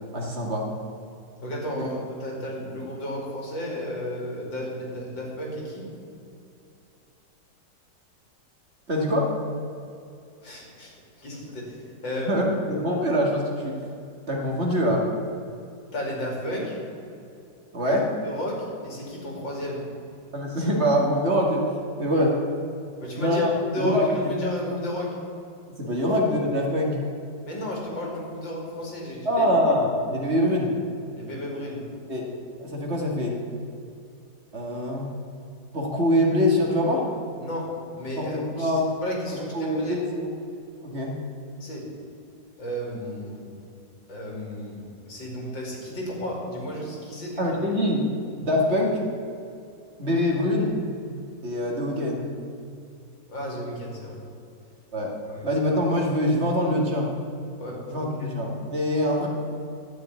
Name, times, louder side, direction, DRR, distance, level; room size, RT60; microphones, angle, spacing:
voice 1, 0.1-0.7 1.8-1.9 8.9-9.3 12.3-13.8 14.3-15.1 17.7-18.1 20.3-21.6 22.0-22.4 23.2-23.5 23.8-24.3 25.8-27.0 29.3-30.7 32.1-32.3 32.6-33.4 34.5-35.1 35.7-37.1 38.2-38.8 39.5-40.3 40.8-41.2 47.4-48.1 48.4-49.0 50.0-50.7 51.4-52.3 54.9-55.1 55.4-57.1 57.9-59.3, equal, 35° right, -1 dB, 2.0 m, -24 dB
voice 2, 1.4-5.9 10.4-10.9 11.2-12.5 15.9-16.8 17.8-17.9 18.2-19.9 23.0-23.4 23.7-25.2 27.5-29.5 31.2-31.9 37.4-40.0 41.6-41.9 42.6-43.4 44.1-47.6 53.3-54.2 55.3-55.4 57.6-58.3, left 1 dB, 85° left, -2 dB, 3.5 m, -33 dB
12.0 x 6.4 x 9.4 m, 2.6 s
omnidirectional pair, 2.0 m